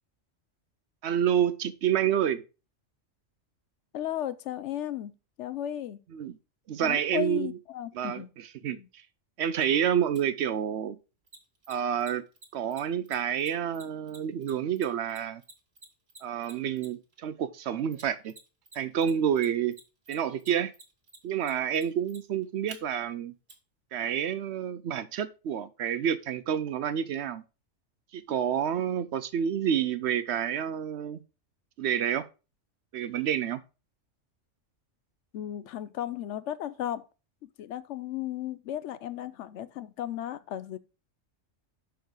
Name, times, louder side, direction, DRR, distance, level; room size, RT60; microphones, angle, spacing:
voice 1, 1.0-2.4 6.1-6.4 6.7-7.6 7.9-9.0 9.4-11.0 11.7-12.2 12.5-15.4 16.2-18.3 18.7-19.8 20.1-20.7 21.2-23.3 23.9-27.4 28.1-31.2 31.8-32.3 32.9-33.6, right 9 dB, 65° right, 0.8 m, -29 dB
voice 2, 3.9-5.1 5.4-6.0 6.8-8.3 8.7-8.9 35.3-37.1 37.4-40.8, left 11 dB, 70° left, 0.8 m, -35 dB
Mechanisms, 10.1-10.2 11.3-17.1 17.9-18.8 19.0-22.8 23.5-23.6, right 3 dB, 40° right, 1.6 m, -49 dB
6.2 x 4.7 x 5.1 m
omnidirectional pair, 1.3 m